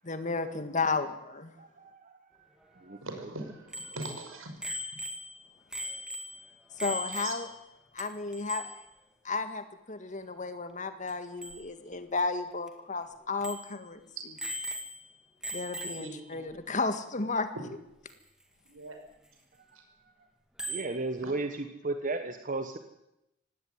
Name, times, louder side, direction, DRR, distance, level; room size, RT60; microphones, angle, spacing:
voice 1, 0.0-1.5 6.8-7.5 7.9-8.7 9.2-14.0 15.5-17.5, left 3 dB, 40° left, 10 dB, 1.8 m, -33 dB
voice 2, 1.6-2.1 2.7-3.3 20.7-22.8, right 2 dB, 40° right, 8 dB, 1.3 m, -35 dB
voice 3, 3.0-4.5 7.2-7.4 15.9-16.4 18.7-19.0 21.2-21.4, right 2 dB, 85° right, 4 dB, 5.8 m, -41 dB
Bicycle bell, 3.7-7.7 8.0-8.1 8.3-8.8 11.1-11.2 11.4-11.6 12.2-12.3 12.7-12.8 13.4-13.8 14.4-15.1 15.4-16.2 18.1-18.2 20.6-21.0, equal, 5° right, 2.2 m, -39 dB
18.0 x 17.0 x 9.5 m, 0.87 s
head